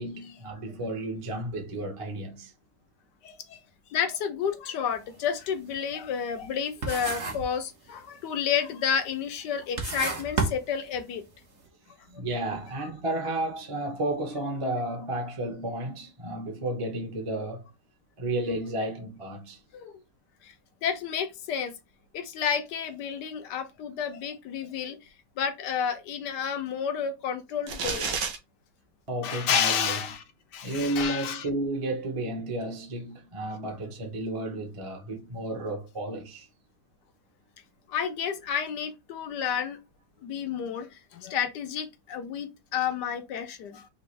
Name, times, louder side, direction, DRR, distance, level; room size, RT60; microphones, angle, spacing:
voice 1, 0.0-2.5 12.1-17.6 18.2-19.6 29.1-30.0 30.6-36.5, right 1 dB, 20° right, 0.9 m, -32 dB
voice 2, 3.2-3.6 3.9-11.2 19.7-20.0 20.4-20.5 20.8-21.7 22.1-25.0 25.4-28.1 29.2-30.2 30.5-31.5 37.9-39.8 40.2-43.9, left 7 dB, 80° left, 1.4 m, -30 dB
sound 1, 4.9-5.1 5.5-6.6 6.8-7.6 7.9-8.4 9.0-9.1 9.6-11.3, right 3 dB, 45° right, 1.1 m, -31 dB
sound 2, 27.7-28.4, right 5 dB, 85° right, 1.7 m, -30 dB
5.1 x 2.7 x 3.2 m
omnidirectional pair, 1.9 m